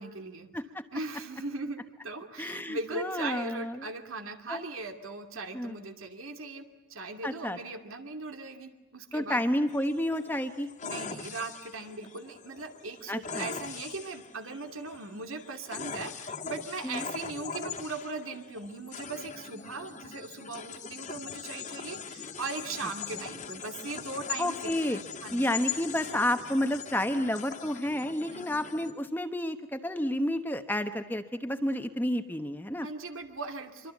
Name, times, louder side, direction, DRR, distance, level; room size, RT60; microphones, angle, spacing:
voice 1, 0.0-0.5 0.9-9.4 10.8-25.5 28.3-28.5 32.8-33.9, right 3 dB, 85° right, 5 dB, 2.5 m, -39 dB
voice 2, 0.5-0.8 2.4-3.9 4.5-4.6 5.5-5.8 7.2-7.6 9.1-10.7 13.1-13.5 16.8-17.0 24.4-25.0 25.3-32.9, left 1 dB, 10° left, 7 dB, 1.1 m, -30 dB
sound 1, 9.7-28.9, left 6 dB, 35° left, 1.7 m, -41 dB
25.5 x 24.5 x 8.3 m, 1.0 s
head